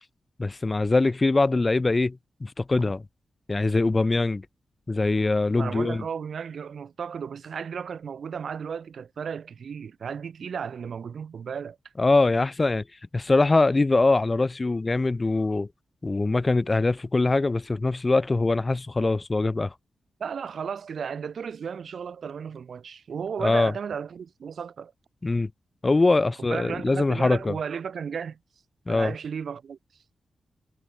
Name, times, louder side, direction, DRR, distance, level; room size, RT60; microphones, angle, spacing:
voice 1, 0.4-3.0 3.5-4.4 4.9-6.0 12.0-12.8 13.1-15.7 16.0-19.7 23.4-23.7 25.2-25.5 25.8-27.6 28.9-29.1, left 3 dB, 25° left, 3.1 m, -23 dB
voice 2, 5.5-11.8 20.2-24.9 26.4-28.4 28.9-29.8, right 7 dB, 70° right, 7.1 m, -34 dB
wide cardioid pair, 125°, 0 cm